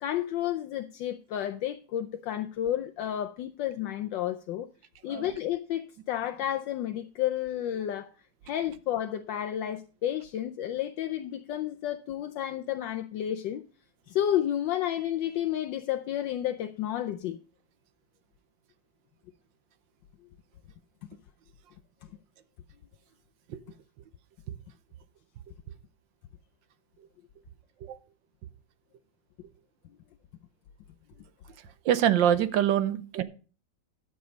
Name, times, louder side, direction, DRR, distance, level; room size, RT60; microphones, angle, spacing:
voice 1, 0.0-4.7 5.0-8.1 8.4-13.7 14.1-17.4, left 11 dB, 75° left, 1.3 m, -31 dB
voice 2, 31.8-33.2, right 10 dB, 75° right, 1.4 m, -25 dB
11.5 x 6.9 x 5.1 m
omnidirectional pair, 2.1 m